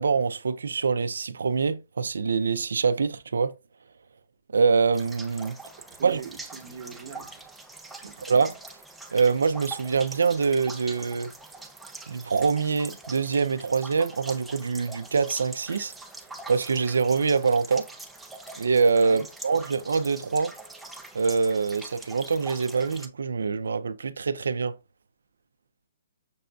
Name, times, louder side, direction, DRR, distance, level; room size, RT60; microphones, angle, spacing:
voice 1, 0.0-3.5 4.5-5.6 6.0-6.2 8.3-8.5 9.1-11.3 12.1-15.9 16.5-17.9 18.6-20.5 21.1-24.7, right 5 dB, 90° right, 0.3 m, -24 dB
sound 1, 4.9-23.1, right 2 dB, 5° right, 0.4 m, -43 dB
voice 2, 5.9-7.4 8.0-8.3 19.0-19.3, right 7 dB, 40° right, 0.9 m, -42 dB
6.0 x 2.5 x 2.2 m
hypercardioid pair, 160°, 0 cm